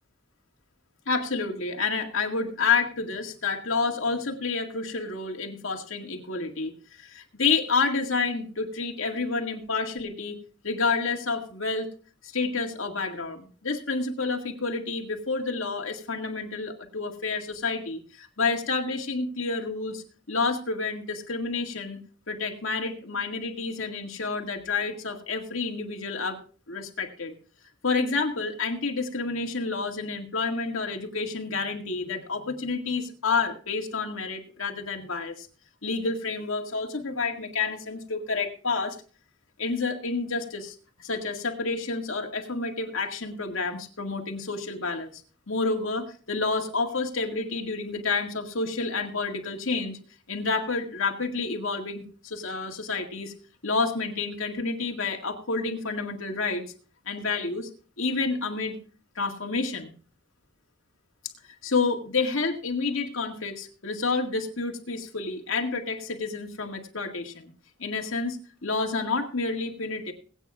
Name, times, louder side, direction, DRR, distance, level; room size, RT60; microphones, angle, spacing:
voice 1, 1.1-6.7 7.0-10.4 10.6-11.9 12.2-22.0 22.3-26.4 26.7-27.3 27.8-35.5 35.8-39.0 39.6-45.1 45.5-50.0 50.3-53.3 53.6-56.6 57.1-57.7 58.0-58.8 59.2-59.9 61.6-67.5 67.8-70.1, left 4 dB, 80° left, 3 dB, 2.0 m, -29 dB
21.5 x 9.0 x 2.4 m, 0.39 s
head